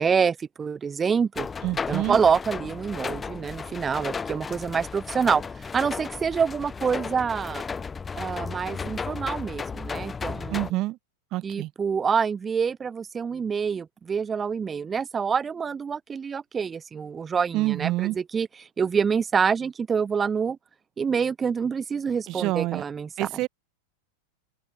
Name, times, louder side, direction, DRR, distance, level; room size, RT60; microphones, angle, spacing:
voice 1, 0.0-1.5 1.9-7.6 8.2-10.6 11.4-18.5 18.8-20.6 21.0-23.1, right 6 dB, 20° right, 0.4 m, -26 dB
sound 1, 1.4-10.7, left 5 dB, 15° left, 1.9 m, -34 dB
voice 2, 1.6-2.2 10.5-11.0 11.3-11.7 17.5-18.2 22.3-22.8 23.2-23.5, right 18 dB, 40° right, 1.2 m, -27 dB
open air
figure-of-eight pair, 90°, 0 cm